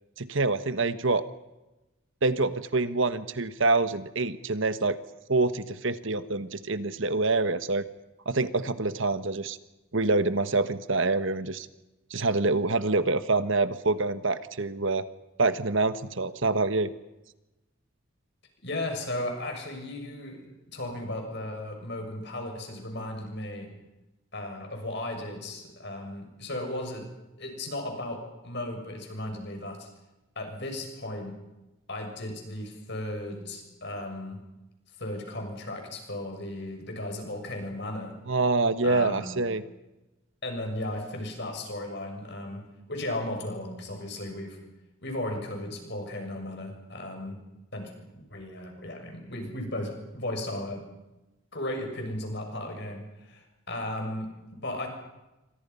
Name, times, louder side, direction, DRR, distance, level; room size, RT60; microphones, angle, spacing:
voice 1, 0.2-1.2 2.2-5.0 5.3-7.8 8.2-9.6 9.9-11.7 12.1-15.0 15.4-16.9 38.3-39.6, right 3 dB, 60° right, 12 dB, 1.2 m, -26 dB
voice 2, 18.6-23.7 24.3-27.1 27.4-29.9 30.3-31.3 31.9-34.4 35.0-38.2 38.8-39.3 40.4-44.6 45.0-47.4 47.7-50.8 51.5-54.9, left 1 dB, 50° left, 3 dB, 6.7 m, -35 dB
28.5 x 25.0 x 5.6 m, 1.0 s
head